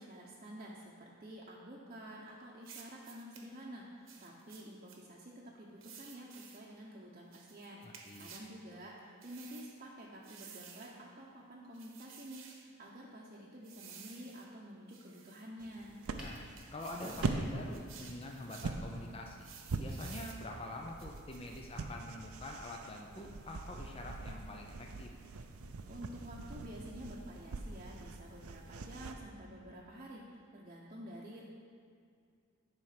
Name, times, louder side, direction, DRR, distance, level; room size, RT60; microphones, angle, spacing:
voice 1, 0.0-16.0 25.9-31.4, equal, 35° right, -5 dB, 0.8 m, -50 dB
sound 1, 2.6-3.5 4.1-5.0 5.8-6.6 7.3-8.5 9.2-9.7 10.2-11.0 11.7-12.7 13.6-14.5 14.9-15.5 16.0-17.3 17.7-18.8 19.4-20.4 21.0-21.6, right 7 dB, 65° right, 1.0 m, -54 dB
voice 2, 7.8-8.3 16.1-19.5 19.8-25.1, left 1 dB, 25° left, 1 dB, 0.5 m, -46 dB
sound 2, 15.6-29.1, right 3 dB, 85° right, 0.6 m, -43 dB
sound 3, 16.2-16.4 17.0-17.5, equal, 5° right, 1.5 m, -47 dB
10.5 x 4.5 x 5.8 m, 2.2 s
head